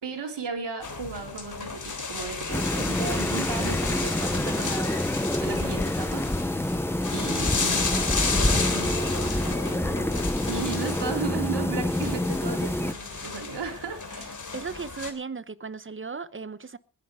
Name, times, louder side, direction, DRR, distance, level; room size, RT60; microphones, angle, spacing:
voice 1, 0.0-6.8 7.1-10.2 10.5-14.4, right 5 dB, 70° right, 4.3 m, -36 dB
sound 1, 0.8-15.1, left 4 dB, 45° left, 3.5 m, -33 dB
sound 2, 2.5-12.9, left 1 dB, 5° left, 0.7 m, -27 dB
voice 2, 14.5-16.8, right 5 dB, 30° right, 1.0 m, -36 dB
20.5 x 10.0 x 4.9 m
cardioid pair, 80°, 43 cm